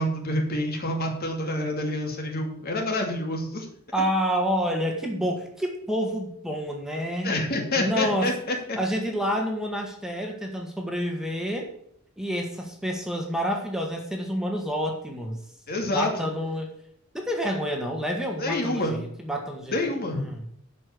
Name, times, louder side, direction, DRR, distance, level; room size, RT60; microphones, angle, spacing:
voice 1, 0.0-3.7 7.2-8.8 15.7-16.1 18.4-18.9 19.7-20.2, left 1 dB, 50° left, 2 dB, 2.5 m, -27 dB
voice 2, 3.9-7.3 7.8-8.3 8.8-11.7 12.2-15.4 15.9-16.7 17.1-20.4, equal, 5° right, 1 dB, 1.8 m, -28 dB
12.0 x 5.5 x 6.7 m, 0.70 s
head